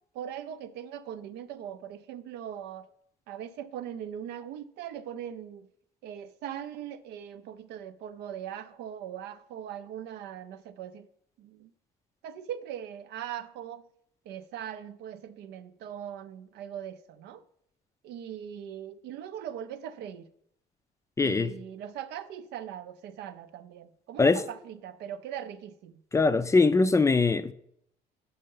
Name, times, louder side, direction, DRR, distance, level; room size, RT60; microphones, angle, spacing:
voice 1, 0.1-2.9 3.3-5.7 6.0-11.1 11.4-11.7 12.2-13.9 14.3-17.4 18.0-20.3 21.2-26.0, right 9 dB, 80° right, 0.5 m, -40 dB
voice 2, 21.2-21.5 24.2-24.4 26.1-27.5, left 3 dB, 15° left, 0.4 m, -22 dB
5.5 x 5.5 x 5.4 m
cardioid pair, 110°, 17 cm